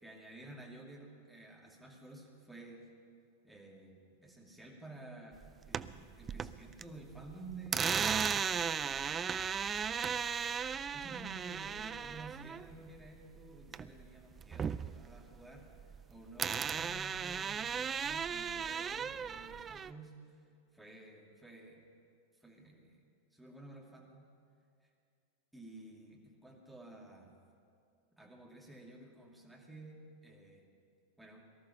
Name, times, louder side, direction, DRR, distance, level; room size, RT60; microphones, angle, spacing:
voice 1, 0.0-2.9 3.4-5.4 5.7-8.5 8.8-9.1 10.9-15.7 16.1-20.4 20.7-21.8 22.4-23.0 23.3-24.2 25.5-27.3 28.1-30.7 31.2-31.5, right 2 dB, 5° right, -1 dB, 2.5 m, -52 dB
sound 1, 5.4-6.8 7.1-14.1 14.4-16.0 16.4-19.9, right 7 dB, 20° right, 0.4 m, -36 dB
18.5 x 13.0 x 5.7 m, 2.4 s
figure-of-eight pair, 90°, 0 cm